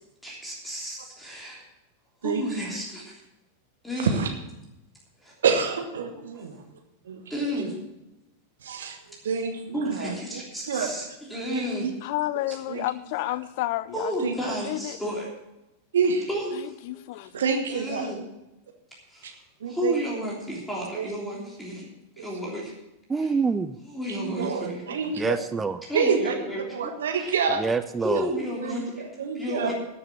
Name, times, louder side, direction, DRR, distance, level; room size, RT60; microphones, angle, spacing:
voice 1, 0.2-1.6 2.2-3.2 3.8-4.2 5.2-5.3 6.3-6.4 7.3-7.7 9.7-11.9 13.9-15.3 16.3-16.8 17.7-18.2 19.1-21.9 22.2-22.7 23.1-23.3 23.9-24.8 25.9-26.9 27.2-27.3 28.0-29.0 29.3-29.7, equal, 5° left, -4 dB, 3.3 m, -32 dB
voice 2, 4.0-4.3 5.4-6.6 7.1-7.2 8.6-9.0 9.2-10.1 10.7-10.9 11.5-11.9 12.7-12.8 14.2-14.3 15.9-16.3 17.3-18.1 19.6-19.9 21.0-21.1 22.2-22.3 24.2-25.4 25.9-26.3 26.7-27.6 28.6-29.7, right 6 dB, 65° right, 5 dB, 1.5 m, -27 dB
voice 3, 12.0-14.4 14.6-15.0 16.5-17.3, left 16 dB, 50° left, 18 dB, 0.5 m, -31 dB
voice 4, 23.1-23.8 25.1-25.8 27.5-28.3, right 4 dB, 15° right, 11 dB, 0.4 m, -26 dB
13.0 x 7.0 x 7.3 m, 0.92 s
figure-of-eight pair, 90°, 0 cm